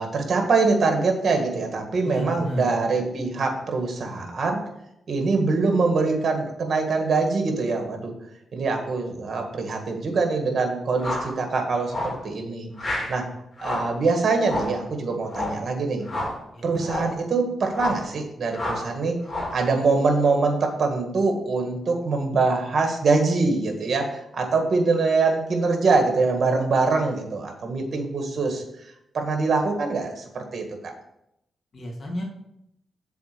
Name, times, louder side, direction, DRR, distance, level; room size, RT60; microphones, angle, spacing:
voice 1, 0.0-4.6 5.1-8.1 8.5-12.7 13.1-13.3 13.6-16.1 16.6-19.2 19.5-28.6 29.1-30.9, right 3 dB, 55° right, 4 dB, 1.9 m, -24 dB
voice 2, 2.0-2.8 16.5-16.9 31.7-32.2, equal, 55° left, -1 dB, 2.5 m, -33 dB
sound 1, 11.0-11.3 11.9-12.2 12.8-13.2 13.6-14.0 14.4-14.8 15.3-15.6 16.1-16.4 16.8-17.2 17.7-18.1 18.5-18.9 19.3-19.6, left 1 dB, 35° left, 3.0 m, -30 dB
7.0 x 4.3 x 6.7 m, 0.81 s
cardioid pair, 65°, 0 cm